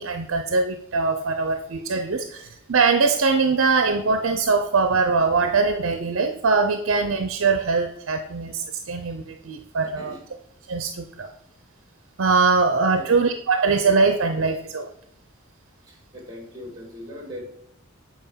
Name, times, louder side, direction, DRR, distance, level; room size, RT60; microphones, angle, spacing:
voice 1, 0.0-10.1 10.7-11.3 12.2-14.9, right 4 dB, 70° right, 7 dB, 0.6 m, -22 dB
voice 2, 9.8-10.2 12.9-13.1 15.8-17.4, left 1 dB, 20° right, 0 dB, 2.5 m, -40 dB
7.9 x 4.8 x 5.6 m, 0.74 s
head